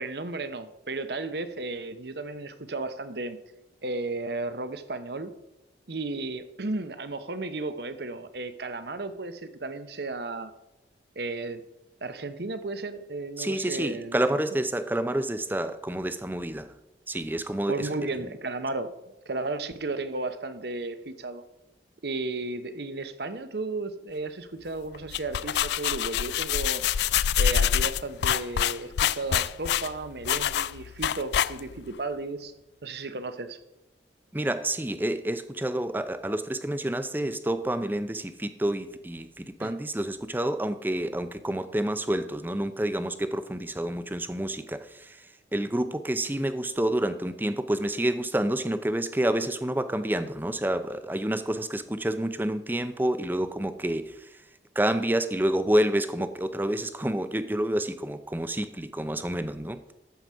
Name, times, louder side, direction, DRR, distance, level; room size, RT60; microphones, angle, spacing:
voice 1, 0.0-3.4 3.8-5.3 5.9-10.5 11.2-11.6 12.0-14.4 17.7-18.9 19.3-21.4 22.0-26.8 27.4-32.5 32.8-33.6 39.6-39.8, right 2 dB, 60° right, 11 dB, 0.9 m, -34 dB
voice 2, 13.4-16.7 17.1-17.9 34.3-54.4 54.8-59.8, right 1 dB, 10° right, 11 dB, 0.6 m, -28 dB
sound 1, 24.9-31.9, left 9 dB, 65° left, 0.3 m, -26 dB
13.0 x 4.8 x 7.6 m, 0.92 s
head